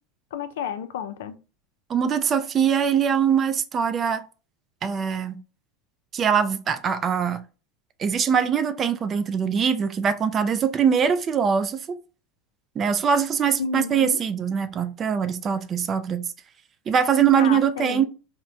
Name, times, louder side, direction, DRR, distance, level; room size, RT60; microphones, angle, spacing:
voice 1, 0.3-1.4 13.6-14.2 17.3-18.1, left 7 dB, 85° left, 0.4 m, -31 dB
voice 2, 1.9-4.2 4.8-5.4 6.1-7.4 8.0-11.8 12.8-16.3 16.9-18.1, right 7 dB, 30° right, 0.4 m, -22 dB
4.2 x 2.1 x 2.5 m
supercardioid pair, 110°, 0 cm